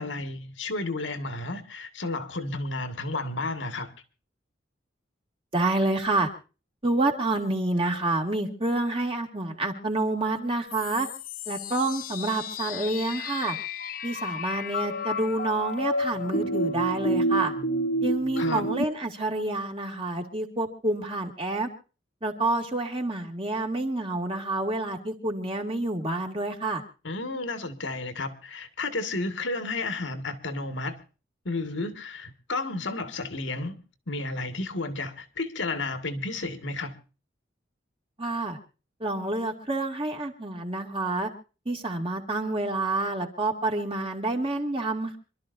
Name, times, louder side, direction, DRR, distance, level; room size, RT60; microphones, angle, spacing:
voice 1, 0.0-3.9 18.4-18.7 27.0-30.9 31.5-33.8 34.1-36.9, left 2 dB, 80° left, 1.9 m, -32 dB
voice 2, 5.5-6.3 6.8-11.1 11.5-13.6 14.0-17.5 18.0-21.7 22.2-26.8 38.2-38.6 39.0-41.3 41.7-45.2, right 2 dB, 30° right, 2.3 m, -28 dB
sound 1, 10.7-18.8, equal, 45° left, 0.8 m, -30 dB
27.0 x 13.0 x 2.6 m
head